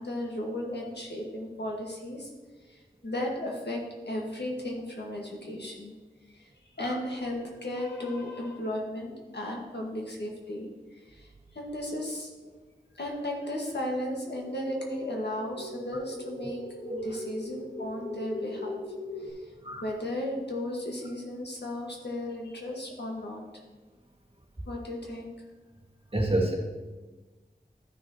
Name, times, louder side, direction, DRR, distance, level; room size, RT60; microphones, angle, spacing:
voice 1, 0.0-2.3 3.0-6.0 6.8-10.7 11.5-12.3 12.9-16.6 16.9-18.8 19.8-23.4 24.7-25.3, left 1 dB, 75° left, -1 dB, 1.6 m, -35 dB
sound 1, 14.3-19.3, left 1 dB, 60° left, 1.8 m, -40 dB
voice 2, 26.1-26.6, right 1 dB, 30° right, -1 dB, 1.7 m, -28 dB
12.5 x 6.1 x 3.0 m, 1.2 s
wide cardioid pair, 45°, 18 cm